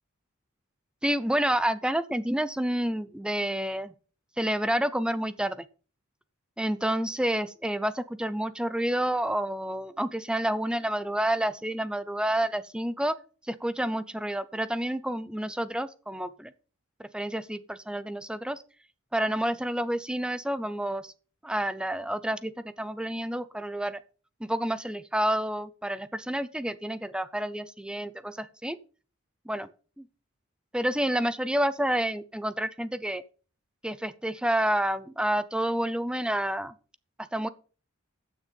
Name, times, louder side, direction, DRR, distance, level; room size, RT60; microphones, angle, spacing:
voice 1, 1.0-3.9 4.4-5.6 6.6-13.1 13.5-16.5 17.1-18.6 19.1-21.1 21.4-22.5 22.8-24.0 24.4-28.8 29.5-29.7 30.0-30.1 30.7-33.2 33.8-36.7 37.3-37.5, right 1 dB, 5° right, 15 dB, 0.4 m, -29 dB
14.5 x 6.5 x 5.3 m, 0.39 s
head